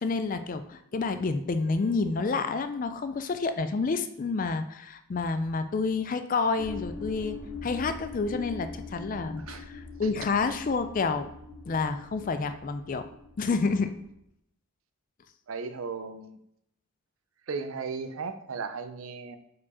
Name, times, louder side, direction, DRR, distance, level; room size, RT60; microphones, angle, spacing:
voice 1, 0.0-11.3 11.7-13.0 13.4-13.9, left 4 dB, 40° left, 10 dB, 0.3 m, -29 dB
sound 1, 6.6-14.1, left 3 dB, 80° left, 2.0 m, -43 dB
voice 2, 15.5-16.4 17.5-19.4, right 5 dB, 65° right, 9 dB, 0.5 m, -36 dB
4.9 x 4.6 x 4.1 m, 0.77 s
head